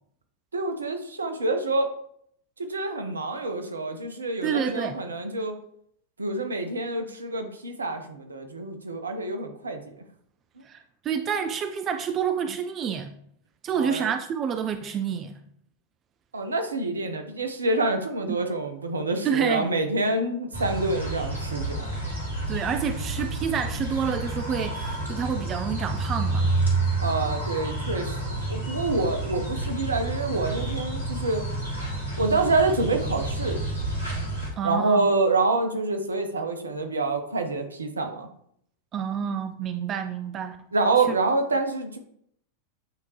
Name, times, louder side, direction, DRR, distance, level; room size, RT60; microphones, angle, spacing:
voice 1, 0.5-1.9 2.6-5.6 6.2-10.0 13.7-14.1 16.3-21.9 27.0-28.2 28.5-31.5 32.2-33.6 34.6-38.3 40.7-42.0, right 3 dB, 75° right, 0.8 m, -27 dB
voice 2, 4.4-4.9 10.7-13.1 13.6-15.3 19.2-19.7 22.5-26.5 34.6-35.1 38.9-40.6 41.1-41.2, right 7 dB, 30° right, 0.4 m, -28 dB
sound 1, 20.5-34.5, right 2 dB, 85° left, 1.8 m, -29 dB
8.7 x 3.6 x 3.0 m
figure-of-eight pair, 90°, 0 cm